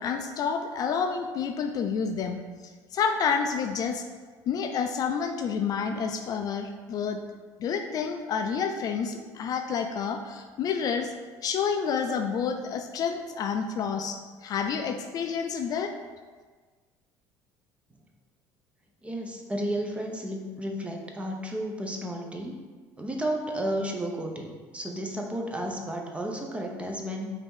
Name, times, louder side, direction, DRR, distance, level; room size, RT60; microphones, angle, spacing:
voice 1, 0.0-2.4 2.9-4.0 4.5-7.2 7.6-11.1 11.4-15.9, left 6 dB, 50° left, 6 dB, 0.4 m, -29 dB
voice 2, 19.0-22.6 23.0-27.3, right 1 dB, 15° right, 1 dB, 0.7 m, -32 dB
5.1 x 2.7 x 3.7 m, 1.5 s
supercardioid pair, 100°, 8 cm